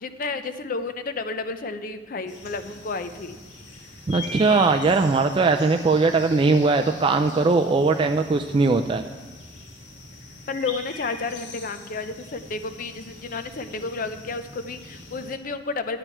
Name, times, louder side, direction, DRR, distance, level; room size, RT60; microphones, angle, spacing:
voice 1, 0.0-3.4 10.5-16.0, left 4 dB, 50° left, 9 dB, 0.6 m, -31 dB
sound 1, 2.3-15.4, left 2 dB, 80° left, 1.6 m, -42 dB
voice 2, 4.1-9.0, right 3 dB, 30° right, 5 dB, 0.3 m, -20 dB
9.8 x 9.0 x 4.4 m, 1.3 s
head